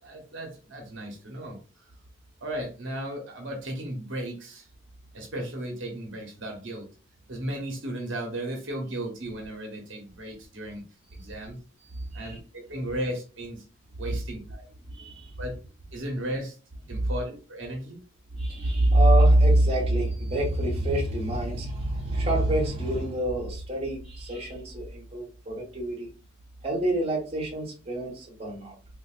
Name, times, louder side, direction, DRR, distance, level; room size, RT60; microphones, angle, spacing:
voice 1, 0.0-1.9 2.4-4.7 5.1-6.9 7.3-10.8 11.1-11.6 12.1-13.6 14.0-14.7 15.4-15.6 15.9-16.6 16.9-18.0, right 1 dB, 70° right, 2 dB, 0.9 m, -35 dB
voice 2, 11.9-12.4 14.9-15.3 18.3-26.1 26.6-28.7, right 1 dB, 30° right, -1 dB, 1.1 m, -25 dB
3.6 x 2.5 x 2.4 m, 0.36 s
head